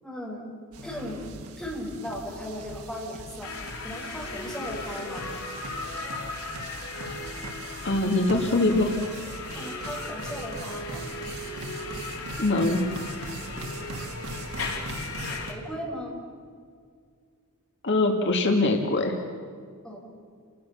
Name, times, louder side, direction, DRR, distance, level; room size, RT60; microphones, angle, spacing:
voice 1, 0.0-0.4 0.8-1.2 1.6-3.5 3.8-5.3 9.5-11.0 15.5-16.2 19.8-20.1, equal, ahead, -3 dB, 6.0 m, -37 dB
sound 1, 0.7-15.5, right 2 dB, 85° right, 2.4 m, -40 dB
sound 2, 3.4-15.5, left 3 dB, 75° left, 4.2 m, -37 dB
voice 2, 7.8-9.0 12.4-12.8 17.8-19.2, left 2 dB, 55° left, 3 dB, 2.2 m, -23 dB
29.5 x 20.0 x 7.2 m, 2.1 s
head